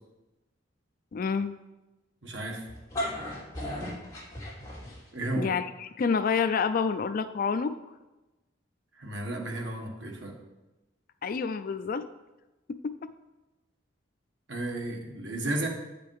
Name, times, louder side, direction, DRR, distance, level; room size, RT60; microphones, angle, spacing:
voice 1, 1.1-1.5 5.4-7.7 11.2-12.0 12.7-12.9, left 5 dB, 45° left, 11 dB, 0.3 m, -28 dB
voice 2, 2.2-2.6 5.1-5.5 9.0-10.4 14.5-15.7, right 1 dB, 65° right, 1 dB, 1.4 m, -33 dB
sound 1, 2.7-5.3, left 1 dB, 20° left, 2.9 m, -35 dB
8.5 x 5.2 x 4.7 m, 1.1 s
head